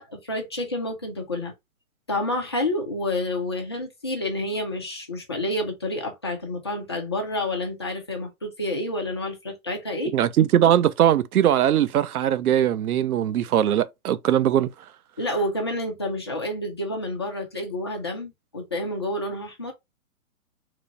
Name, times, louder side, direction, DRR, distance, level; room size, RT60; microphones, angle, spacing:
voice 1, 0.0-1.5 2.1-10.1 15.2-19.7, left 1 dB, 20° left, 0.3 m, -29 dB
voice 2, 10.1-14.7, right 10 dB, 90° right, 0.5 m, -20 dB
3.1 x 2.4 x 3.9 m
hypercardioid pair, 145°, 42 cm